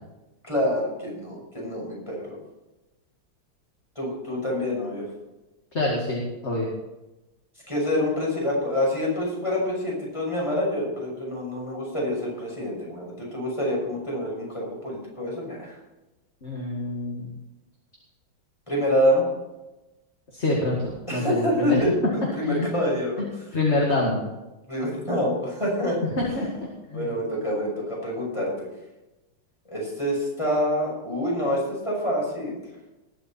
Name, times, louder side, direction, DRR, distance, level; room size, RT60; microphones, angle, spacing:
voice 1, 0.4-2.4 4.0-5.1 7.7-15.8 18.7-19.2 21.1-21.9 22.3-23.2 24.7-26.0 26.9-28.7 29.7-32.6, left 1 dB, 15° left, -4 dB, 6.1 m, -26 dB
voice 2, 5.7-6.7 16.4-17.3 20.3-21.8 22.4-22.7 23.5-24.2 26.1-26.5 26.9-27.1, left 2 dB, 35° left, -2 dB, 2.2 m, -26 dB
20.0 x 8.4 x 4.3 m, 1.0 s
omnidirectional pair, 2.3 m